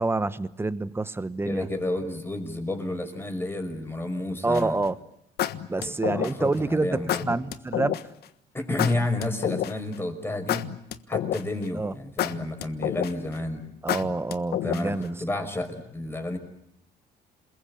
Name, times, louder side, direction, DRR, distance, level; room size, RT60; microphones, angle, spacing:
voice 1, 0.0-1.7 4.4-5.0 5.7-8.0 11.7-11.9 13.8-15.2, right 2 dB, 15° right, 15 dB, 1.2 m, -27 dB
voice 2, 1.4-4.8 5.8-7.4 8.5-10.7 11.1-13.6 14.6-16.4, left 1 dB, 15° left, 6 dB, 5.6 m, -31 dB
sound 1, 4.5-4.8 5.4-6.5 7.1-8.0 8.8-9.9 10.5-11.6 12.2-13.3 13.9-15.0, left 12 dB, 70° left, 1.4 m, -29 dB
28.0 x 21.5 x 8.7 m, 0.77 s
cardioid pair, 110°, 17 cm